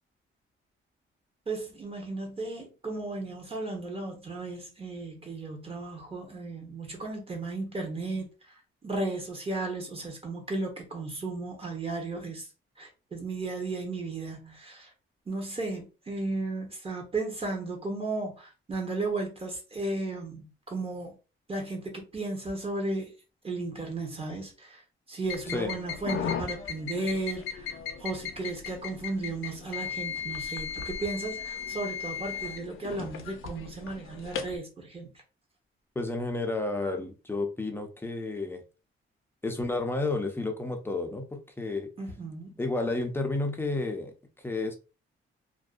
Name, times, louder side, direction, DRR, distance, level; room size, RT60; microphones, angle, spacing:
voice 1, 1.5-8.3 8.8-12.4 12.8-14.9 15.3-21.1 21.5-23.1 23.4-24.8 25.1-27.7 28.0-35.1 42.0-42.5, right 2 dB, 25° right, 0.9 m, -35 dB
sound 1, 25.2-34.6, left 7 dB, 75° left, 0.5 m, -36 dB
voice 2, 36.0-38.6 39.4-41.9 42.6-44.8, left 2 dB, 10° left, 0.5 m, -31 dB
2.6 x 2.1 x 2.4 m
cardioid pair, 110°, 21 cm